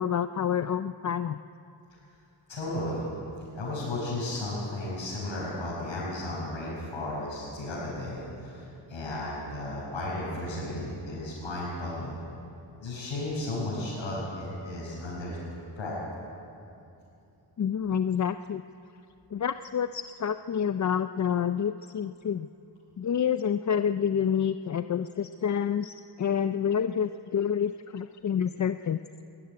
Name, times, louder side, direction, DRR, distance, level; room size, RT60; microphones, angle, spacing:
voice 1, 0.0-1.4 17.6-18.6 19.3-22.5 23.0-29.0, left 8 dB, 40° left, 11 dB, 0.5 m, -28 dB
voice 2, 2.5-3.0 3.5-12.2 12.8-15.4 15.7-16.0, left 1 dB, 85° left, -7 dB, 5.9 m, -34 dB
22.0 x 14.0 x 9.7 m, 2.8 s
wide cardioid pair, 110°, 45 cm